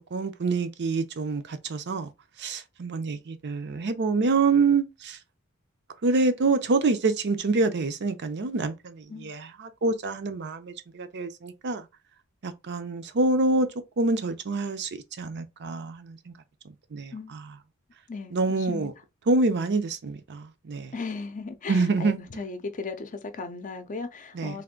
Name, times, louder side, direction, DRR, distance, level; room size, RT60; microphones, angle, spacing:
voice 1, 0.1-2.1 2.4-5.2 6.0-9.5 9.8-11.8 12.4-13.7 14.0-14.9 15.2-16.3 16.9-17.1 18.3-18.9 19.3-20.9 21.7-22.2 24.4-24.5, right 3 dB, 55° right, 0.6 m, -26 dB
voice 2, 18.1-18.9 20.9-24.6, left 4 dB, 35° left, 0.6 m, -36 dB
3.5 x 2.6 x 3.7 m
head